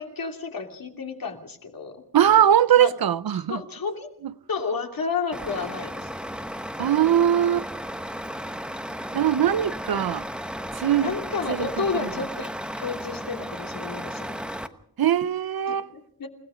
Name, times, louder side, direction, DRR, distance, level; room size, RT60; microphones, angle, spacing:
voice 1, 0.0-2.0 2.8-2.9 3.5-4.1 4.5-6.1 11.0-12.5 12.8-14.4 15.7-16.3, left 5 dB, 60° left, 3.0 m, -31 dB
voice 2, 2.1-3.6 4.2-4.3 6.8-7.7 9.1-10.3 10.7-11.2 11.5-12.1 15.0-15.9, right 10 dB, 65° right, 0.7 m, -21 dB
Truck, 5.3-14.7, equal, ahead, 1.1 m, -34 dB
29.0 x 17.5 x 5.1 m
wide cardioid pair, 155°, 39 cm